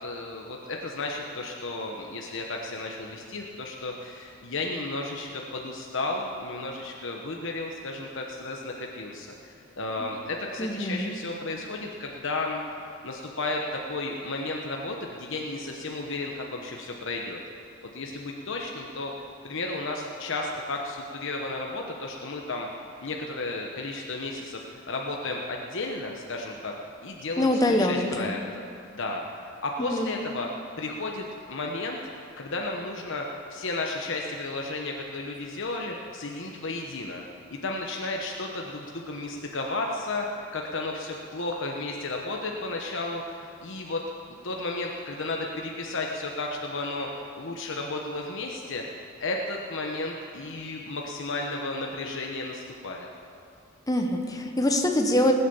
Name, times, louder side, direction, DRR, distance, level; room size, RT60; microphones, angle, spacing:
voice 1, 0.0-17.4 17.9-19.1 19.4-22.7 23.0-26.7 27.0-28.6 29.0-30.5 30.8-32.0 32.4-37.2 37.5-44.0 44.4-48.8 49.2-53.1, left 2 dB, 65° left, 0 dB, 1.1 m, -33 dB
voice 2, 10.6-11.1 27.4-28.3 29.9-30.1 53.9-55.3, left 1 dB, 15° left, 3 dB, 1.1 m, -24 dB
19.0 x 8.5 x 7.1 m, 2.5 s
head